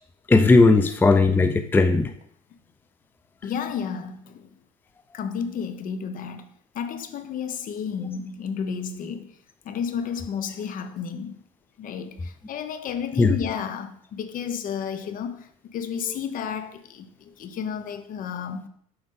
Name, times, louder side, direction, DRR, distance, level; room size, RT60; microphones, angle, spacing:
voice 1, 0.3-2.1 13.2-13.4, left 3 dB, 10° left, 0.4 m, -17 dB
voice 2, 1.4-1.8 3.4-4.5 5.1-6.4 6.7-9.3 9.6-11.3 11.8-18.7, left 7 dB, 50° left, 0.8 m, -32 dB
7.4 x 4.8 x 3.8 m
hypercardioid pair, 75°, 19 cm